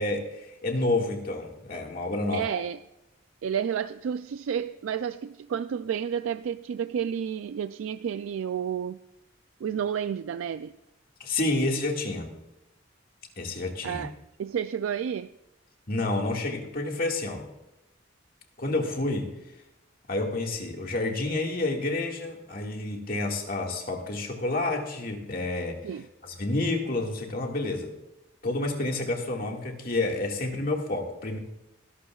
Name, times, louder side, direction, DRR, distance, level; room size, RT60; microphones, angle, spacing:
voice 1, 0.0-2.5 11.2-12.3 13.4-14.1 15.9-17.5 18.6-19.3 20.1-25.8 26.2-27.9 28.4-31.4, left 2 dB, 45° left, 1.9 m, -29 dB
voice 2, 2.3-2.8 3.4-9.0 9.6-10.7 13.8-14.1 14.4-15.3 25.8-26.1, right 8 dB, 85° right, 0.3 m, -31 dB
23.5 x 12.0 x 2.4 m
head